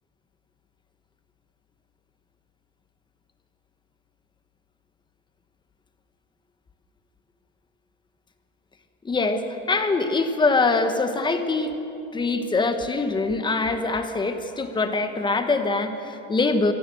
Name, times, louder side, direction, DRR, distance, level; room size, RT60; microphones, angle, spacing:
voice 1, 9.0-11.7 12.1-16.7, left 3 dB, 15° left, 7 dB, 1.2 m, -23 dB
23.0 x 15.0 x 7.8 m, 2.9 s
cardioid pair, 150°, 30 cm